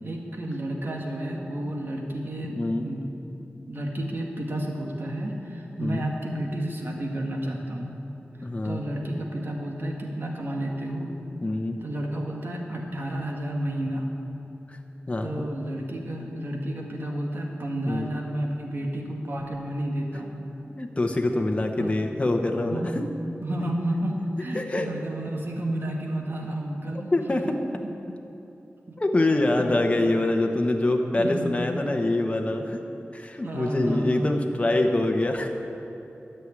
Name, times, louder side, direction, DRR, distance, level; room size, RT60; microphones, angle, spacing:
voice 1, 0.0-3.1 3.7-8.0 8.6-11.1 11.8-14.1 15.2-20.5 21.8-21.9 22.7-23.1 23.4-27.1 27.8-27.9 31.1-31.5 33.4-34.3, right 1 dB, 55° right, 0 dB, 1.9 m, -31 dB
voice 2, 2.5-2.9 5.8-6.0 8.4-8.8 11.4-11.8 14.7-14.8 15.1-15.4 17.9-18.1 20.8-22.9 24.5-24.9 27.1-27.5 29.0-32.8 33.1-35.5, left 2 dB, 30° left, 2 dB, 1.0 m, -25 dB
13.0 x 6.5 x 9.6 m, 3.0 s
wide cardioid pair, 95°, 4 cm